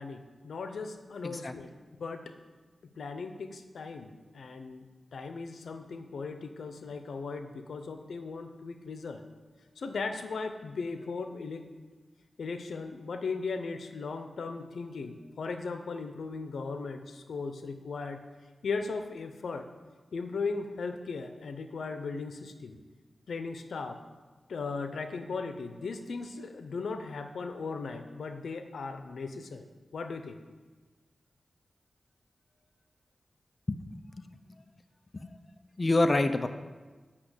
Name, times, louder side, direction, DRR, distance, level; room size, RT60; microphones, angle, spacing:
voice 1, 0.0-1.7 2.0-2.3 3.0-4.8 5.1-9.2 9.8-11.7 12.4-18.2 18.6-19.7 20.1-22.8 23.3-24.0 24.5-30.4, left 4 dB, 90° left, 7 dB, 0.8 m, -37 dB
voice 2, 1.2-1.5 33.7-34.4 35.1-35.4 35.8-36.5, left 2 dB, 35° left, 8 dB, 0.6 m, -28 dB
8.7 x 6.1 x 7.9 m, 1.3 s
wide cardioid pair, 75°, 0 cm